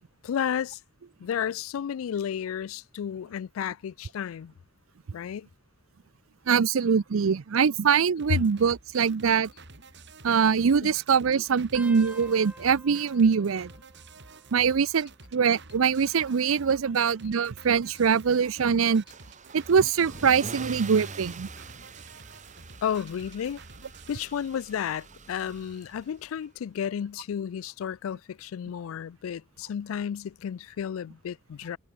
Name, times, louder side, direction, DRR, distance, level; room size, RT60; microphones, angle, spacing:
voice 1, 0.2-0.8 1.2-4.5 5.1-5.5 8.3-8.4 10.8-10.9 22.8-23.6 24.1-31.8, left 8 dB, 80° left, 0.3 m, -32 dB
voice 2, 6.5-9.5 10.2-13.7 14.5-19.0 19.5-21.5, right 6 dB, 80° right, 0.5 m, -23 dB
sound 1, 8.2-24.2, right 3 dB, 60° right, 4.5 m, -50 dB
sound 2, 11.7-14.9 15.2-15.8 16.8-18.3 18.9-19.2 20.4-20.8 22.3-22.4, right 1 dB, 5° right, 2.6 m, -51 dB
Car / Engine starting / Accelerating revving vroom, 19.1-26.2, right 3 dB, 40° right, 2.8 m, -44 dB
head